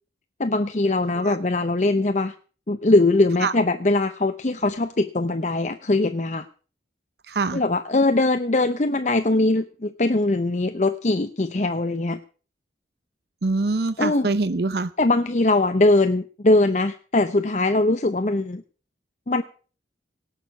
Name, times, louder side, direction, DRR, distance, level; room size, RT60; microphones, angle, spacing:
voice 1, 0.4-2.3 2.7-6.5 7.5-12.2 14.0-14.3 15.0-18.6 19.3-19.4, left 2 dB, 40° left, 10 dB, 0.7 m, -21 dB
voice 2, 7.3-7.6 13.4-14.9, right 3 dB, 65° right, 14 dB, 0.7 m, -24 dB
18.0 x 6.6 x 8.2 m, 0.40 s
head